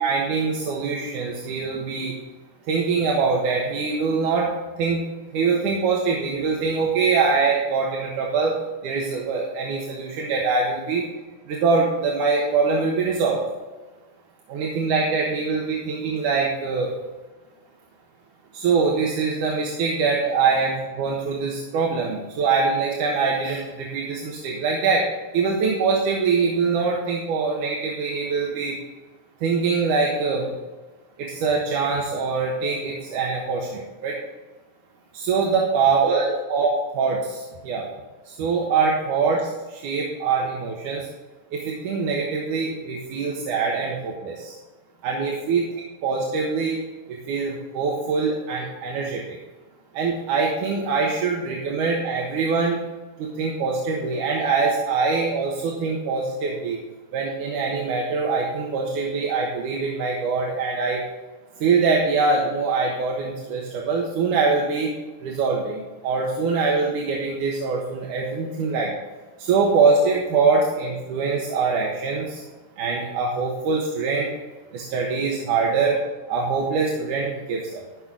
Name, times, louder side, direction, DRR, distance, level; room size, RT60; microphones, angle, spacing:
voice 1, 0.0-2.1 2.7-4.5 4.8-5.0 5.3-8.5 8.8-11.0 11.5-13.4 14.5-16.9 18.5-25.0 25.3-28.8 29.4-30.5 31.2-34.2 35.1-36.7 36.9-37.8 38.3-41.0 41.5-44.5 45.0-45.7 46.0-46.8 47.1-49.2 49.9-52.8 53.2-56.8 57.1-61.0 61.6-64.9 65.2-68.9 69.4-72.4 72.8-74.3 74.7-76.0 76.3-77.8, right 4 dB, 85° right, -2 dB, 2.8 m, -23 dB
14.5 x 6.2 x 3.8 m, 1.2 s
omnidirectional pair, 3.5 m